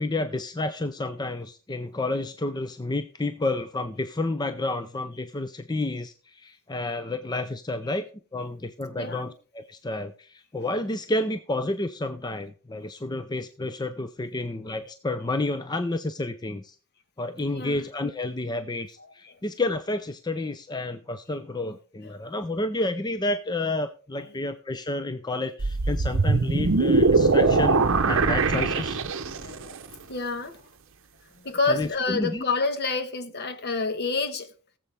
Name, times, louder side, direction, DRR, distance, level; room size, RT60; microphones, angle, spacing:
voice 1, 0.0-8.1 8.3-16.8 17.2-29.0 31.7-32.4, left 2 dB, 20° left, 0.5 m, -30 dB
voice 2, 9.0-9.3 17.5-17.8 19.2-19.4 29.4-29.8 30.1-30.6 31.3-34.5, left 3 dB, 45° left, 1.3 m, -28 dB
sound 1, 25.6-29.6, right 3 dB, 60° right, 0.8 m, -22 dB
18.5 x 7.6 x 3.4 m
head